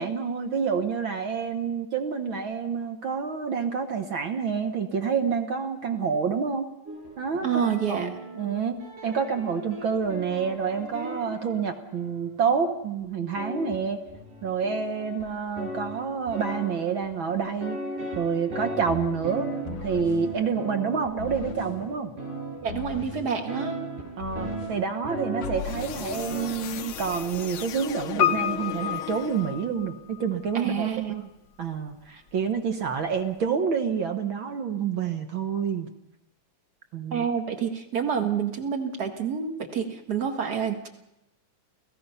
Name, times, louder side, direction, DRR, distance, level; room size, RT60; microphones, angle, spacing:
voice 1, 0.0-6.7 7.2-7.6 7.9-14.0 14.4-17.8 18.1-19.5 19.8-22.1 24.2-31.2 31.6-35.9 36.9-37.3, right 6 dB, 55° right, 6 dB, 1.5 m, -28 dB
sound 1, 6.9-12.4 13.0-13.1 13.4-26.5, right 1 dB, 85° right, 7.9 m, -37 dB
voice 2, 7.4-8.1 22.6-23.8 30.5-31.3 37.1-40.9, right 7 dB, 40° right, 5 dB, 1.7 m, -28 dB
sound 2, 19.7-20.2 21.2-21.7 22.7-23.2 24.2-24.8 25.4-29.8, left 9 dB, 80° left, 1.1 m, -37 dB
Piano, 28.2-30.2 30.5-30.6, left 10 dB, 45° left, 1.4 m, -28 dB
29.5 x 17.5 x 5.7 m, 0.90 s
omnidirectional pair, 3.6 m